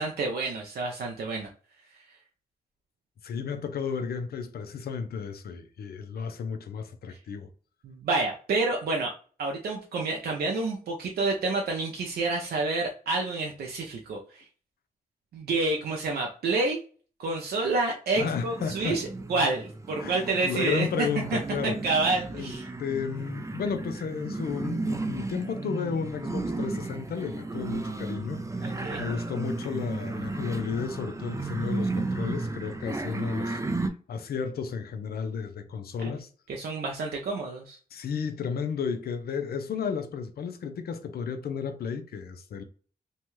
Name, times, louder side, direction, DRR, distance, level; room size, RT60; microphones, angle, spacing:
voice 1, 0.0-1.5 7.8-14.5 15.3-16.8 17.2-22.7 28.6-29.0 36.5-37.8, right 3 dB, 80° right, 0.5 m, -29 dB
voice 2, 3.2-7.5 18.2-19.0 20.0-21.8 22.3-22.5 22.8-33.6 34.1-36.3 37.9-42.6, left 6 dB, 80° left, 0.5 m, -33 dB
sound 1, 18.1-33.9, right 2 dB, 20° right, 0.4 m, -34 dB
2.7 x 2.2 x 3.0 m
cardioid pair, 70°, 16 cm